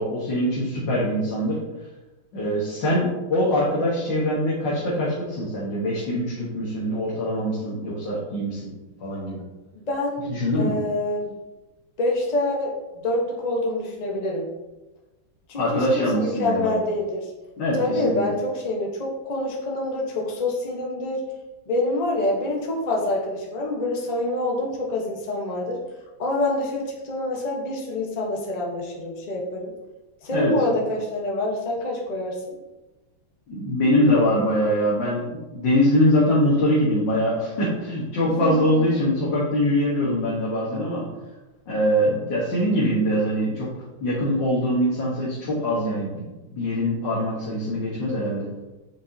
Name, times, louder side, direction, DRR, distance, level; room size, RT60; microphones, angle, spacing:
voice 1, 0.0-1.6 2.3-8.7 9.0-9.4 10.3-10.7 15.6-16.8 17.6-18.1 30.3-30.5 33.5-41.1 41.7-43.7 44.0-46.2 46.5-48.5, equal, 65° left, -6 dB, 2.0 m, -23 dB
voice 2, 9.7-10.3 10.6-11.3 12.0-12.8 13.0-14.5 15.5-17.3 17.8-21.2 21.7-25.8 26.2-29.7 30.2-32.5 38.2-38.8, left 2 dB, 30° left, -2 dB, 0.8 m, -26 dB
7.5 x 5.1 x 2.7 m, 1.1 s
omnidirectional pair, 2.2 m